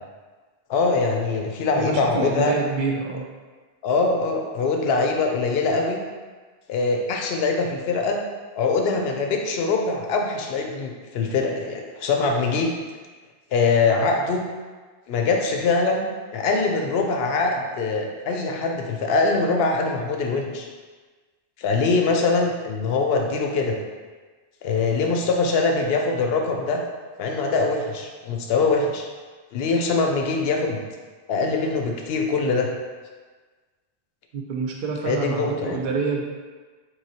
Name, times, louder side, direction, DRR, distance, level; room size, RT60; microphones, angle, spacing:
voice 1, 0.7-2.6 3.8-6.0 6.7-8.2 8.6-12.7 13.5-14.4 15.1-20.7 21.6-23.8 24.6-26.8 27.2-29.1 29.5-30.8 31.3-32.7 35.0-35.8, left 3 dB, 70° left, 2 dB, 0.8 m, -23 dB
voice 2, 1.8-3.2 34.3-36.2, right 4 dB, 60° right, 1 dB, 0.6 m, -27 dB
3.9 x 3.1 x 2.8 m, 1.4 s
omnidirectional pair, 1.1 m